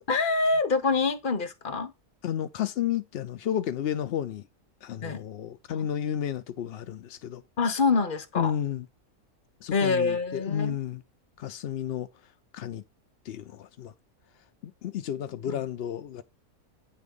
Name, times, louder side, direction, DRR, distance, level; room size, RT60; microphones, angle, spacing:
voice 1, 0.1-1.9 5.0-5.2 5.7-5.9 7.6-8.5 9.7-10.8 15.5-15.6, left 4 dB, 40° left, 1.0 m, -26 dB
voice 2, 2.2-4.4 4.8-7.4 8.3-8.9 9.6-11.0 11.4-12.1 12.5-12.8 13.2-13.9 14.8-16.2, left 10 dB, 70° left, 0.5 m, -32 dB
9.1 x 3.5 x 5.3 m
omnidirectional pair, 1.6 m